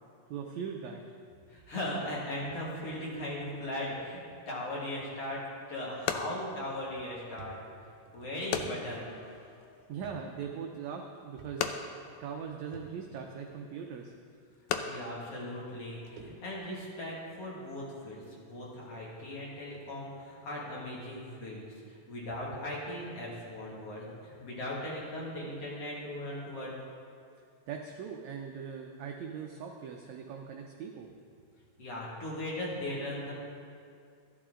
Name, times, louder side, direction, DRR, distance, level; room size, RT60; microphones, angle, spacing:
voice 1, 0.3-1.0 9.9-11.9 12.2-14.1 27.7-31.1, right 6 dB, 85° right, 2 dB, 1.6 m, -40 dB
voice 2, 1.5-7.6 8.1-9.5 14.8-26.7 31.8-33.3, left 1 dB, 45° left, -5 dB, 2.7 m, -38 dB
sound 1, 5.0-16.4, left 7 dB, 80° left, 1.8 m, -41 dB
sound 2, 6.2-6.4 6.8-6.9 7.4-9.4 10.0-10.2 10.5-10.6 11.4-11.8 12.7-13.3 14.2-14.3 15.2-15.3 15.6-16.8 17.2-17.5 18.2-18.3 18.8-18.9 19.2-19.3 19.7-19.9, right 5 dB, 65° right, 2.4 m, -52 dB
14.0 x 11.0 x 3.8 m, 2.4 s
omnidirectional pair, 4.0 m